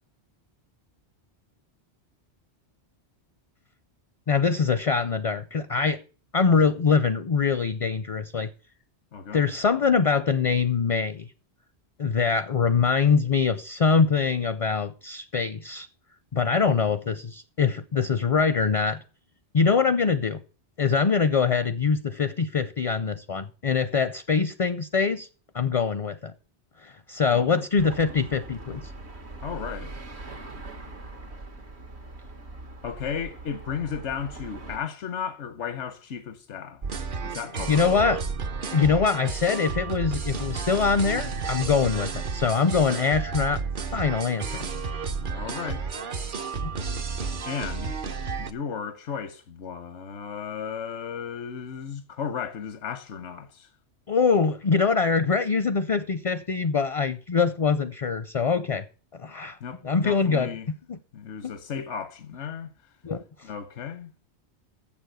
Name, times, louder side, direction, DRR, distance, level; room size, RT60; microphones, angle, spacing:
voice 1, 4.3-6.0 6.3-8.5 9.3-11.3 12.0-15.9 16.3-19.0 19.5-20.4 20.8-25.3 25.5-26.3 26.8-28.8 37.7-38.2 38.7-43.6 43.9-44.6 46.6-46.7 54.1-58.8 59.2-59.6 59.8-60.5 60.9-61.0 63.0-63.2, left 5 dB, 40° left, 0.6 m, -23 dB
voice 2, 9.1-9.5 27.3-27.6 29.4-30.0 32.8-36.8 37.2-37.9 45.2-45.9 47.4-47.9 48.4-53.7 59.6-60.7 61.1-62.7 63.4-64.1, left 7 dB, 85° left, 1.2 m, -35 dB
sound 1, 27.8-34.8, right 2 dB, 65° right, 1.8 m, -41 dB
sound 2, 36.8-48.5, right 5 dB, 50° right, 1.0 m, -32 dB
7.5 x 7.0 x 7.8 m
omnidirectional pair, 1.2 m